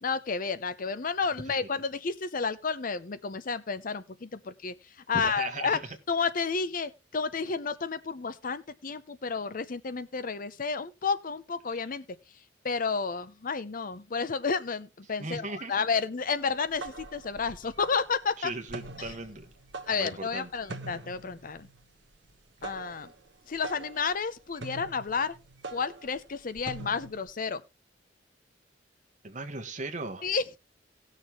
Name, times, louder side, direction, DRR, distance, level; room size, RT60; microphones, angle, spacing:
voice 1, 0.0-4.7 5.1-5.8 6.1-12.0 12.6-18.5 19.0-19.1 19.9-21.7 22.6-23.1 23.5-25.3 25.7-27.6 30.2-30.6, left 5 dB, 45° left, 0.6 m, -31 dB
voice 2, 5.1-5.9 11.7-11.8 15.2-15.8 18.4-19.5 19.9-20.5 29.2-30.3, right 2 dB, 40° right, 1.5 m, -37 dB
sound 1, 16.5-27.3, right 3 dB, 65° right, 1.1 m, -44 dB
18.0 x 6.6 x 3.0 m
head